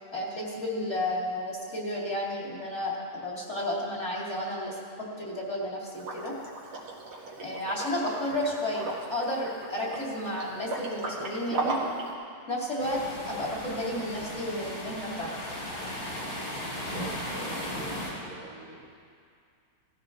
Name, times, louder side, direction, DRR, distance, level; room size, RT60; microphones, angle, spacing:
voice 1, 0.1-6.4 7.4-11.7 12.5-15.3, left 1 dB, 30° left, -4 dB, 2.6 m, -32 dB
Liquid, 5.9-12.1, right 3 dB, 80° right, 2.8 m, -36 dB
sound 1, 12.8-18.1, equal, 60° left, 4.4 m, -36 dB
voice 2, 16.9-17.7 18.2-18.9, right 3 dB, 45° right, -3 dB, 1.4 m, -45 dB
17.5 x 15.0 x 3.8 m, 2.3 s
omnidirectional pair, 2.3 m